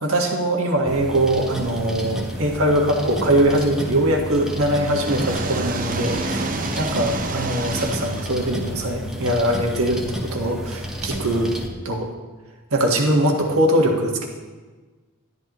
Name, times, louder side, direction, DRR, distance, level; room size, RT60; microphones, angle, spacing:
voice 1, 0.0-11.5 11.8-12.1 12.7-14.3, right 1 dB, 70° right, 1 dB, 1.6 m, -21 dB
sound 1, 0.9-11.7, equal, ahead, 1.0 m, -31 dB
sound 2, 3.8-9.7, right 3 dB, 40° right, 0.7 m, -30 dB
12.5 x 11.0 x 3.1 m, 1.3 s
head